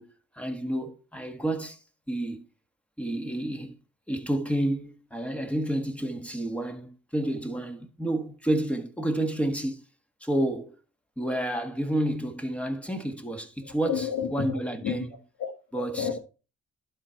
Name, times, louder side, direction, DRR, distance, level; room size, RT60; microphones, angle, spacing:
voice 1, 0.0-1.8 2.1-2.4 3.0-3.7 4.1-9.8 10.2-10.8 11.2-14.0 14.3-15.1 15.7-16.1, right 1 dB, 5° left, 1.5 m, -30 dB
voice 2, 13.8-15.1 15.4-16.2, left 7 dB, 75° left, 1.8 m, -31 dB
11.5 x 4.4 x 4.5 m
cardioid pair, 90°, 30 cm